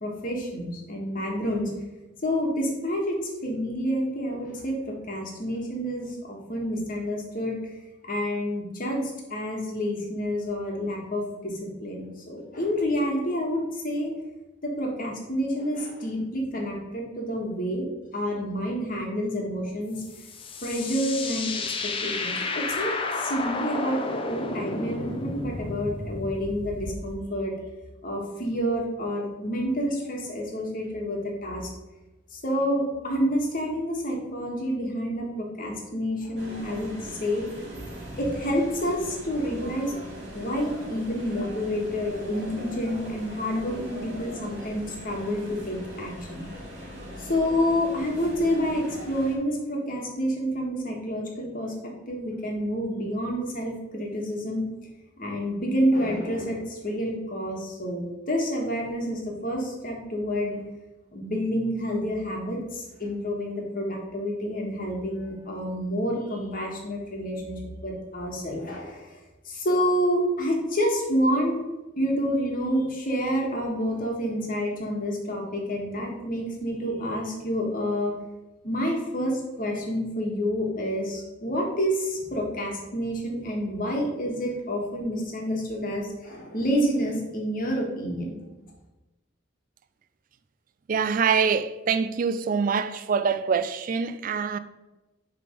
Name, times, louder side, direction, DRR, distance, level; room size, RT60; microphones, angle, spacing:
voice 1, 0.0-1.7 2.2-7.6 8.1-14.1 14.6-17.9 18.1-20.0 20.6-21.5 21.8-27.5 28.0-31.7 32.3-37.5 38.2-39.9 40.3-46.4 47.2-54.7 55.2-60.5 61.1-69.1 69.4-71.6 72.0-78.1 78.6-88.4, equal, 45° left, 1.4 m, -28 dB
sound 1, 20.0-27.1, left 3 dB, 25° left, 0.5 m, -32 dB
sound 2, 36.4-49.4, equal, 60° right, 2.2 m, -40 dB
voice 2, 90.9-94.6, right 6 dB, 45° right, 0.3 m, -25 dB
6.6 x 3.5 x 5.1 m
head